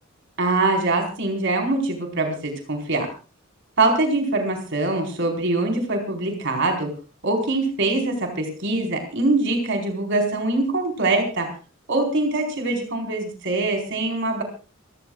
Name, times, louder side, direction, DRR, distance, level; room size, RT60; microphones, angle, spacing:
voice 1, 0.4-3.1 3.8-6.9 7.2-11.5 11.9-14.4, right 2 dB, 65° right, 2 dB, 4.6 m, -23 dB
28.0 x 15.0 x 2.4 m, 0.35 s
head